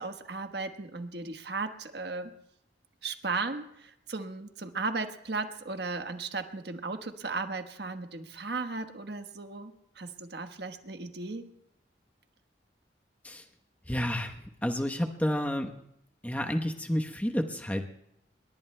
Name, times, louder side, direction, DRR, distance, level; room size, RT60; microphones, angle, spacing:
voice 1, 0.0-2.3 3.0-11.5, right 3 dB, 65° right, 7 dB, 1.3 m, -36 dB
voice 2, 13.9-14.3 14.6-15.7 16.2-17.8, equal, 10° left, 3 dB, 0.9 m, -30 dB
27.0 x 22.0 x 2.2 m, 0.77 s
head